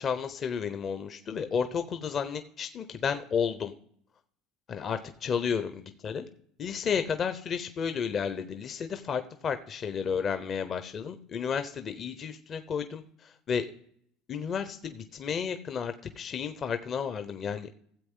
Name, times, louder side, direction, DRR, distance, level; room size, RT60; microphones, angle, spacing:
voice 1, 0.0-3.7 4.7-6.3 6.6-13.7 14.3-17.7, left 6 dB, 40° left, 9 dB, 0.7 m, -32 dB
13.0 x 7.8 x 3.7 m, 0.64 s
supercardioid pair, 100°, 0 cm